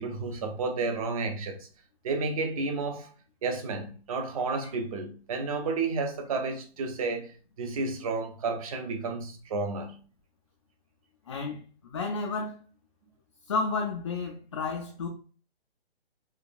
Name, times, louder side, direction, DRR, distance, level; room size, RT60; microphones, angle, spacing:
voice 1, 0.0-1.7 2.0-3.1 3.4-7.3 7.6-10.0, right 3 dB, 35° right, 0.6 m, -31 dB
voice 2, 11.3-11.6 11.9-12.6 13.5-15.1, left 4 dB, 30° left, 0.3 m, -31 dB
4.7 x 2.2 x 2.5 m
figure-of-eight pair, 140°, 32 cm